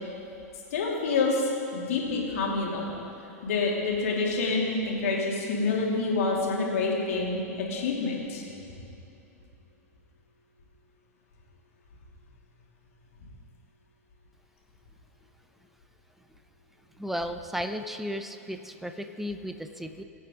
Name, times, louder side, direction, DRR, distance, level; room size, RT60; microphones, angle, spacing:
voice 1, 0.7-2.9 3.4-8.4, left 3 dB, 60° left, -2 dB, 2.9 m, -27 dB
voice 2, 17.0-20.0, equal, 5° right, 7 dB, 0.7 m, -34 dB
22.0 x 8.6 x 3.9 m, 2.9 s
figure-of-eight pair, 95°, 8 cm